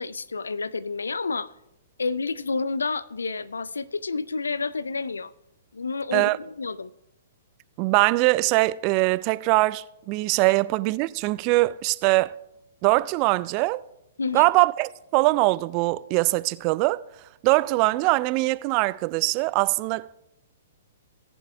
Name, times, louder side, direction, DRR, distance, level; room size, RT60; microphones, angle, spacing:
voice 1, 0.0-1.5 2.0-5.3 5.7-6.9 14.2-14.5, left 4 dB, 80° left, 0.4 m, -29 dB
voice 2, 7.8-12.3 12.8-13.8 14.3-17.0 17.4-20.2, right 21 dB, 35° right, 0.3 m, -22 dB
17.0 x 7.0 x 3.4 m
figure-of-eight pair, 120°, 0 cm